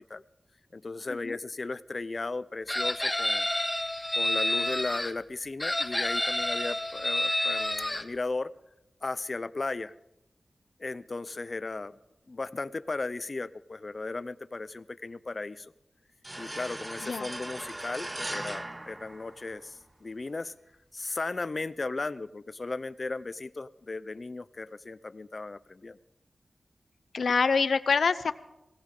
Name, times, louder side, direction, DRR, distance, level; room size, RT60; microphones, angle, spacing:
voice 1, 0.7-3.5 4.1-8.5 9.0-9.9 10.8-12.0 12.3-15.7 16.4-20.5 20.9-26.0, left 3 dB, 40° left, 15 dB, 0.5 m, -36 dB
Chicken rooster, 2.7-5.1 5.6-8.0, left 1 dB, 15° left, 0.9 m, -29 dB
sound 1, 16.2-19.8, right 1 dB, 20° right, 0.4 m, -39 dB
voice 2, 27.1-28.3, left 5 dB, 85° left, 14 dB, 0.6 m, -25 dB
19.5 x 16.5 x 3.8 m, 0.92 s
wide cardioid pair, 110°, 0 cm